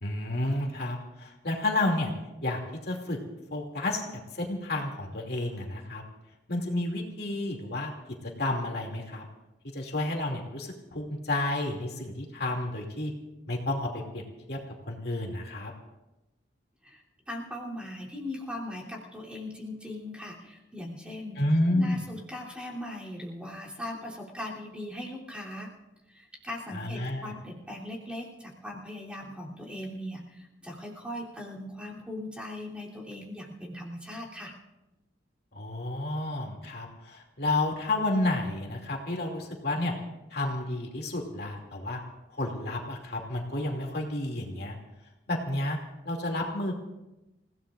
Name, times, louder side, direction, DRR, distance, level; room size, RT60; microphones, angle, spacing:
voice 1, 0.0-2.1 2.4-3.2 3.5-4.0 4.3-6.0 6.5-7.9 8.4-9.2 9.7-13.1 13.5-14.2 14.5-14.6 14.9-15.7 21.4-22.0 26.7-27.3 35.5-39.9 40.3-42.0 42.3-44.8 45.3-45.8 46.0-46.7, left 2 dB, 60° left, 0 dB, 2.5 m, -30 dB
voice 2, 16.8-21.4 21.7-25.7 26.1-34.5, left 1 dB, 5° right, -5 dB, 3.1 m, -39 dB
29.0 x 17.0 x 2.5 m, 0.97 s
head